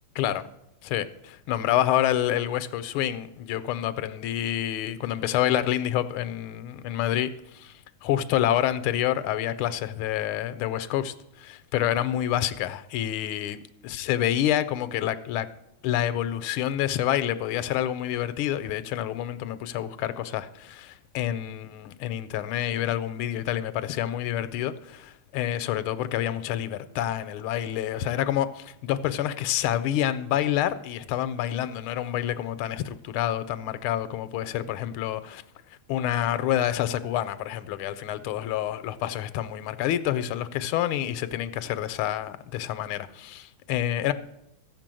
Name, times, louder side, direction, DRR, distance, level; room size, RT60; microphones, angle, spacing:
voice 1, 0.8-7.7 8.0-15.5 15.8-35.4 35.9-44.1, left 12 dB, 80° left, 1.5 m, -28 dB
14.0 x 5.3 x 7.5 m
omnidirectional pair, 2.4 m